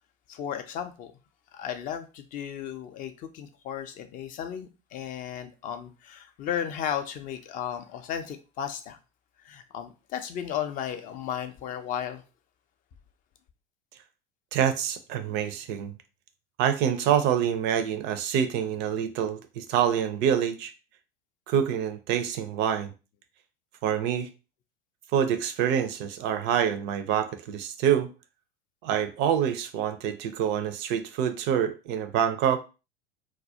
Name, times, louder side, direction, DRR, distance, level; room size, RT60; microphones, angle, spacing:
voice 1, 0.3-1.1 1.5-9.0 9.4-12.2, left 9 dB, 30° left, 0.4 m, -34 dB
voice 2, 14.5-15.9 16.6-20.7 21.5-22.9 23.8-24.3 25.1-28.1 28.8-32.6, right 9 dB, 40° right, 0.4 m, -26 dB
2.2 x 2.1 x 2.6 m
figure-of-eight pair, 80°, 30 cm